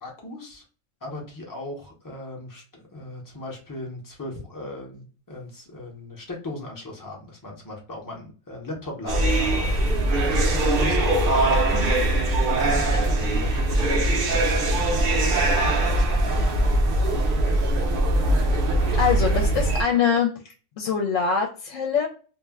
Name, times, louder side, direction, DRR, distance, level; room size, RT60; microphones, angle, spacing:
voice 1, 0.0-0.6 1.0-9.9 10.5-11.7 12.5-16.6 18.8-19.2, left 2 dB, 20° left, -1 dB, 0.6 m, -38 dB
sound 1, 9.1-19.8, right 1 dB, 55° right, 0.7 m, -21 dB
voice 2, 19.0-20.3 20.8-22.1, left 6 dB, 75° left, 2 dB, 0.9 m, -23 dB
2.4 x 2.1 x 3.4 m, 0.38 s
omnidirectional pair, 1.3 m